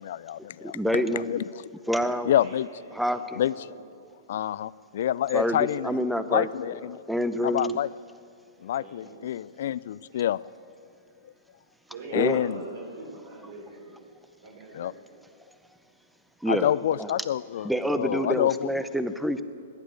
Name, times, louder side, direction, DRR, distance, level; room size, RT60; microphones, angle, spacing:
voice 1, 0.0-1.6 2.3-2.7 3.4-3.5 4.3-6.0 6.3-7.0 7.4-7.9 8.6-10.4 12.1-12.6 14.7-14.9 16.5-18.7, left 11 dB, 65° left, 20 dB, 0.4 m, -27 dB
voice 2, 0.7-1.3 1.9-2.3 2.9-3.4 5.3-6.5 7.1-7.8 12.1-12.4 16.4-16.7 17.0-17.1 17.6-19.4, equal, ahead, 11 dB, 0.8 m, -27 dB
voice 3, 2.3-2.9 3.1-3.8 5.3-5.9 8.7-9.3 11.9-13.9 14.4-15.1, right 2 dB, 60° right, -1 dB, 3.8 m, -43 dB
17.5 x 11.5 x 6.5 m, 2.3 s
hypercardioid pair, 115°, 0 cm